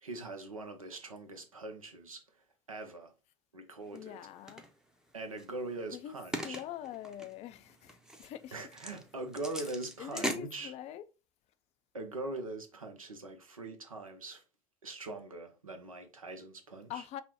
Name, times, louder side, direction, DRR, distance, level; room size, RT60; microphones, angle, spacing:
voice 1, 0.0-2.2 2.7-3.1 3.5-4.2 5.1-6.6 8.5-10.7 11.9-14.4 14.8-17.0, right 2 dB, 85° right, 0.7 m, -42 dB
voice 2, 3.9-4.6 5.9-6.2 6.4-8.6 10.0-11.0 16.9-17.2, left 11 dB, 40° left, 0.4 m, -44 dB
sound 1, 3.9-4.7 5.4-10.3, equal, 5° right, 0.6 m, -41 dB
5.5 x 2.1 x 2.8 m
figure-of-eight pair, 70°, 17 cm